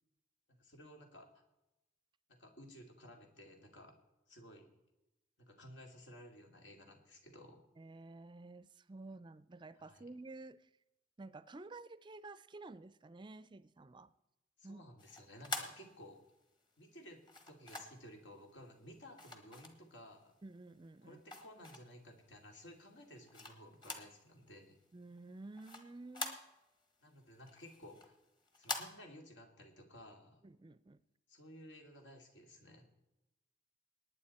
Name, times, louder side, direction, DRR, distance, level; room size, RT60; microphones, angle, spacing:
voice 1, 0.5-1.4 2.3-4.0 4.3-4.7 5.4-7.6 9.8-10.1 14.6-16.2 16.8-17.2 17.5-20.3 21.0-24.8 27.0-28.1 28.6-30.4 31.3-32.9, equal, 75° left, 3 dB, 2.7 m, -56 dB
voice 2, 7.8-10.7 11.2-14.1 14.6-14.8 20.4-21.2 24.9-26.4 30.4-31.0, right 2 dB, 25° right, 16 dB, 0.5 m, -52 dB
sound 1, 15.0-16.4 17.2-18.1 19.2-20.2 20.7-22.1 22.6-24.2 24.5-24.6 24.9-26.8 27.2-28.8, left 3 dB, 25° left, 1.5 m, -45 dB
19.0 x 9.4 x 4.3 m, 0.93 s
head